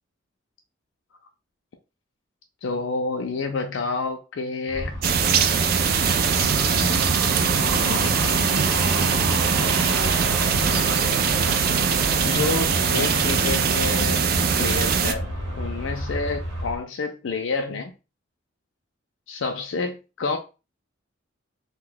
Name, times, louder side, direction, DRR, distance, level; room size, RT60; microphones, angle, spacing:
voice 1, 2.6-5.0 7.6-8.2 8.4-8.5 12.2-14.3 14.6-15.3 15.6-17.9 19.3-20.4, left 4 dB, 70° left, 0.4 m, -29 dB
sound 1, 4.7-16.8, equal, 85° right, 1.1 m, -30 dB
sound 2, 5.0-15.1, right 6 dB, 50° right, 0.3 m, -22 dB
2.7 x 2.2 x 3.8 m
head